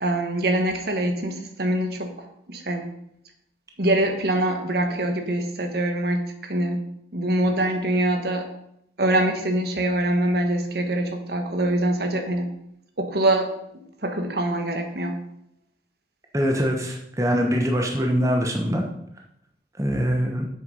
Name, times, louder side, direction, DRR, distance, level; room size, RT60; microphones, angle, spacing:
voice 1, 0.0-2.1 2.5-2.9 3.8-6.8 7.1-8.5 9.0-12.5 13.0-13.5 14.0-15.2, right 1 dB, 55° right, 5 dB, 1.3 m, -24 dB
voice 2, 16.3-18.8 19.8-20.5, equal, 15° right, 1 dB, 1.0 m, -23 dB
7.8 x 6.9 x 5.5 m, 0.77 s
head